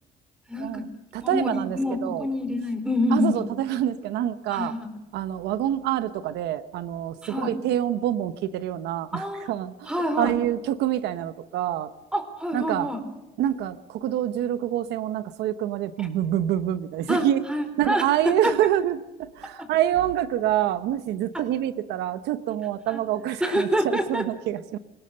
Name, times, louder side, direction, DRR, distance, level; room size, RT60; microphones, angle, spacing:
voice 1, 0.5-0.9 1.2-3.5 4.5-4.7 7.2-7.5 9.1-9.5 9.9-10.3 12.1-13.0 16.0-16.1 17.1-18.5 19.6-19.7 21.3-21.4 22.9-23.0 23.4-24.2, equal, 5° right, 9 dB, 4.3 m, -26 dB
voice 2, 1.1-2.3 3.1-4.8 5.1-11.9 12.5-12.9 13.4-17.4 17.8-24.8, right 12 dB, 85° right, 12 dB, 1.0 m, -26 dB
26.5 x 18.0 x 6.7 m, 0.99 s
cardioid pair, 110°, 17 cm